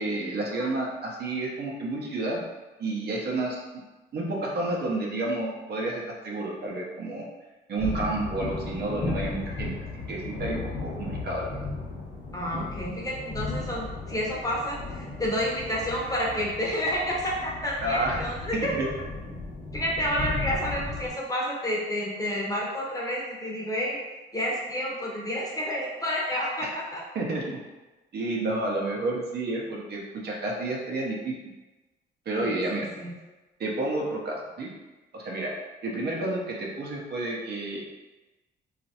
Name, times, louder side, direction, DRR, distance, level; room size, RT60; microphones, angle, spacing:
voice 1, 0.0-2.4 2.8-3.6 4.1-7.3 7.7-9.7 10.1-11.7 17.8-18.3 18.5-18.9 25.0-25.1 26.6-26.7 27.1-27.6 28.1-31.4 32.3-32.9 33.6-34.7 35.1-35.5 35.8-37.8, right 2 dB, 55° right, -2 dB, 0.7 m, -30 dB
sound 1, 7.8-21.1, left 3 dB, 40° left, 1.0 m, -35 dB
voice 2, 12.3-18.7 19.7-24.0 24.3-27.0 32.4-33.1, equal, 20° left, -4 dB, 0.8 m, -30 dB
3.0 x 2.4 x 2.8 m, 1.2 s
cardioid pair, 90°, 20 cm